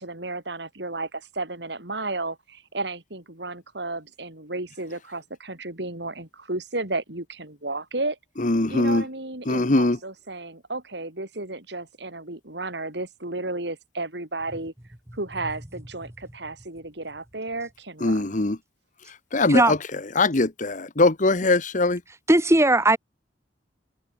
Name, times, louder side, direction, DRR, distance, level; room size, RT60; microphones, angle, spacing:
voice 1, 0.0-8.2 8.7-14.7 15.1-18.4, right 2 dB, 65° right, 4.5 m, -33 dB
voice 2, 8.4-9.0 9.5-10.0 18.0-18.6 19.3-19.8 20.2-22.0, left 2 dB, 45° left, 1.2 m, -21 dB
voice 3, 22.3-23.0, right 1 dB, 15° right, 1.8 m, -17 dB
head